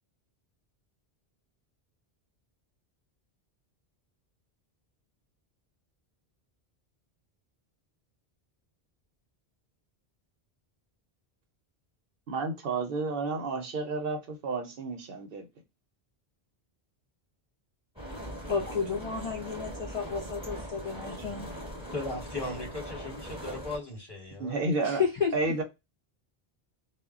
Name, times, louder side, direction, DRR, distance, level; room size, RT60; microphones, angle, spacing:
voice 1, 12.3-15.5 24.4-25.0 25.3-25.6, right 3 dB, 65° right, 0.8 m, -31 dB
sound 1, 18.0-23.8, equal, 5° right, 0.7 m, -40 dB
voice 2, 18.5-21.5 24.8-25.3, left 6 dB, 55° left, 0.4 m, -31 dB
voice 3, 21.9-24.7, left 2 dB, 25° left, 0.8 m, -37 dB
2.1 x 2.1 x 3.4 m
omnidirectional pair, 1.1 m